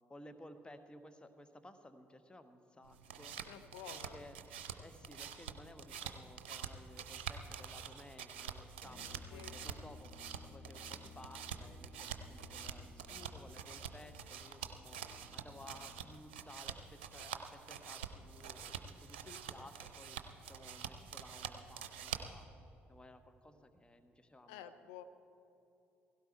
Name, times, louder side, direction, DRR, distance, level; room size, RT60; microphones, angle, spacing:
voice 1, 0.1-3.4 3.9-4.4 4.8-15.0 15.3-20.2 20.5-22.5 22.9-24.7, left 1 dB, 15° left, 10 dB, 1.3 m, -56 dB
sound 1, 2.8-22.4, right 7 dB, 70° right, 0.7 m, -47 dB
voice 2, 3.4-4.2 9.3-9.5 24.5-25.0, left 10 dB, 65° left, 9 dB, 0.7 m, -50 dB
Brass instrument, 8.8-16.3, left 5 dB, 35° left, 1.0 m, -58 dB
16.5 x 16.5 x 4.5 m, 2.8 s
figure-of-eight pair, 45°, 6 cm